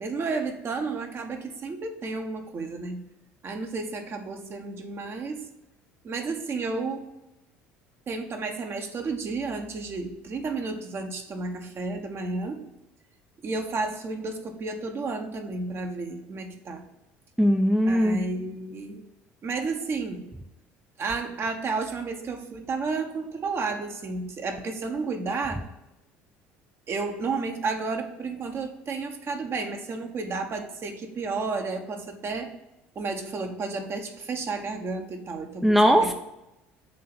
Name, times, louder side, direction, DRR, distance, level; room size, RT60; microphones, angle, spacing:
voice 1, 0.0-3.0 3.4-5.5 6.0-7.1 8.1-12.6 13.4-16.9 17.9-19.0 19.4-20.3 21.0-25.6 26.9-32.5 32.9-36.1, right 4 dB, 40° right, 4 dB, 1.1 m, -32 dB
voice 2, 17.4-18.2 35.6-36.1, equal, 5° right, 4 dB, 0.6 m, -19 dB
7.4 x 2.8 x 6.0 m, 0.92 s
hypercardioid pair, 70°, 6 cm